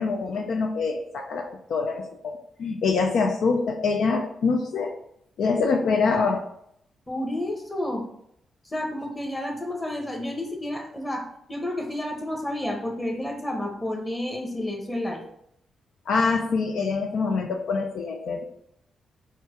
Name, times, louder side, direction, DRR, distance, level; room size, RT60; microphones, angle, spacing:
voice 1, 0.0-4.9 5.4-6.4 16.1-18.4, left 4 dB, 75° left, 3 dB, 0.4 m, -25 dB
voice 2, 7.1-8.0 8.6-15.2, left 1 dB, 20° left, 1 dB, 1.3 m, -30 dB
4.5 x 2.3 x 4.6 m, 0.72 s
supercardioid pair, 50°, 0 cm